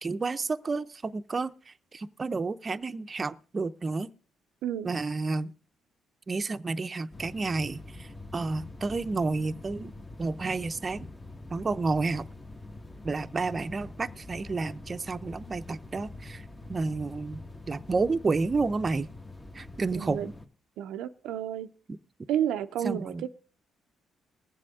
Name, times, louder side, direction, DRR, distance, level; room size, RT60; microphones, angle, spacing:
voice 1, 0.0-4.1 4.8-5.5 6.3-9.9 10.2-11.1 11.5-12.3 13.0-17.4 17.7-19.1 19.5-20.3 22.8-23.3, right 3 dB, 30° right, 0.6 m, -30 dB
voice 2, 4.6-4.9 20.0-20.3 20.8-21.7 22.3-23.3, right 10 dB, 90° right, 0.5 m, -31 dB
sound 1, 7.1-20.5, left 2 dB, 20° left, 1.2 m, -45 dB
21.5 x 7.6 x 3.5 m
cardioid pair, 90°, 0 cm